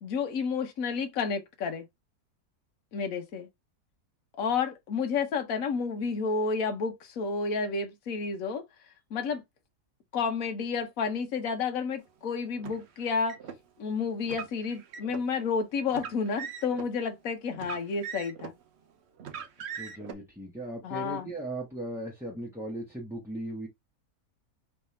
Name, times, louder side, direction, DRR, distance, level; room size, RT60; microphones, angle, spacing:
voice 1, 0.0-1.8 2.9-3.5 4.4-8.6 9.1-9.4 10.1-13.4 13.8-18.5 20.8-21.3, left 5 dB, 60° left, 1.3 m, -30 dB
Car, 12.6-13.6 14.2-15.3 15.9-16.9 17.5-18.6 19.2-20.1, right 7 dB, 55° right, 0.9 m, -41 dB
voice 2, 19.8-23.7, right 1 dB, ahead, 1.1 m, -37 dB
3.4 x 3.3 x 4.2 m
omnidirectional pair, 1.7 m